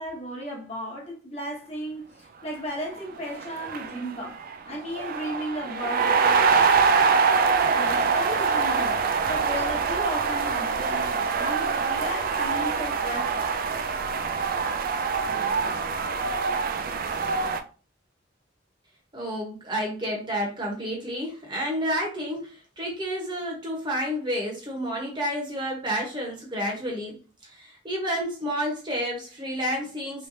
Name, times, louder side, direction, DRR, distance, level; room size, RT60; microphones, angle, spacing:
voice 1, 0.0-6.9 7.7-13.5, equal, 35° left, 1.0 m, -35 dB
sound 1, 3.0-3.1 3.3-17.6, right 5 dB, 50° right, 0.3 m, -24 dB
voice 2, 19.1-27.2 27.4-30.3, equal, 25° right, 1.0 m, -30 dB
3.1 x 3.1 x 2.7 m
head